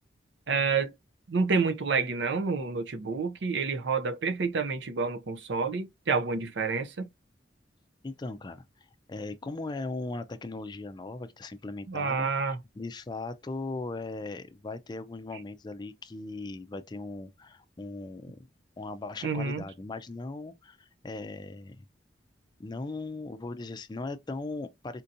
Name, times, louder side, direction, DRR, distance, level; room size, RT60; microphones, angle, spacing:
voice 1, 0.5-0.9 1.3-7.1 11.9-12.6 19.2-19.6, right 4 dB, 70° right, 0.6 m, -28 dB
voice 2, 8.0-18.5 18.8-21.9 22.6-25.0, left 2 dB, 25° left, 0.4 m, -38 dB
4.4 x 2.7 x 2.5 m
head